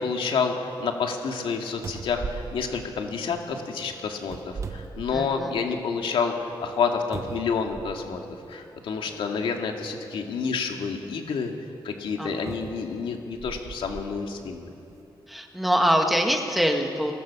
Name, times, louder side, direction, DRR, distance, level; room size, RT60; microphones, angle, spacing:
voice 1, 0.0-8.2 8.5-11.5 11.8-14.7, left 5 dB, 75° left, 3 dB, 2.3 m, -29 dB
sound 1, 1.8-3.5 4.2-5.6 6.1-6.2 7.1-8.2 9.2-9.3 12.5-14.1 14.8-14.9, right 5 dB, 35° right, 1.0 m, -38 dB
voice 2, 5.1-5.5 9.1-9.3 12.2-12.5 15.3-17.1, equal, ahead, 3 dB, 1.6 m, -24 dB
24.0 x 18.5 x 7.2 m, 2.6 s
wide cardioid pair, 180°, 9 cm